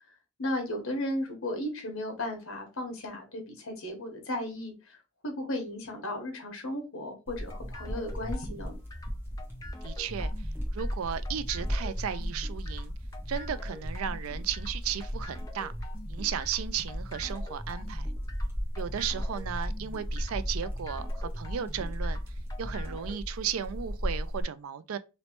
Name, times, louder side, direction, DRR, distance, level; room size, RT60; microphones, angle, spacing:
voice 1, 0.4-8.7, left 1 dB, 80° left, 1.2 m, -35 dB
sound 1, 7.3-24.4, equal, 10° right, 1.1 m, -36 dB
sound 2, 7.4-23.2, left 1 dB, 15° left, 0.5 m, -45 dB
voice 2, 9.8-10.3 10.7-12.9 13.3-15.7 16.1-18.1 18.8-22.2 22.6-25.0, right 8 dB, 85° right, 0.4 m, -35 dB
3.1 x 3.0 x 3.0 m
head